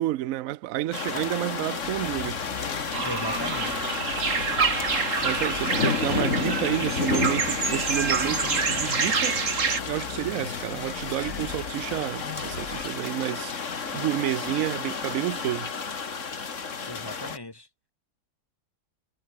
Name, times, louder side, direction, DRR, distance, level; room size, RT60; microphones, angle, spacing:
voice 1, 0.0-2.4 5.2-9.4 9.9-13.5 13.9-15.7, right 14 dB, 65° right, 0.9 m, -30 dB
sound 1, 0.9-17.4, left 5 dB, 50° left, 2.2 m, -31 dB
sound 2, 1.8-12.9, left 7 dB, 65° left, 2.0 m, -40 dB
sound 3, 2.9-9.8, right 5 dB, 50° right, 2.2 m, -27 dB
voice 2, 3.0-3.8 16.8-17.7, left 2 dB, 15° left, 2.2 m, -37 dB
omnidirectional pair, 1.7 m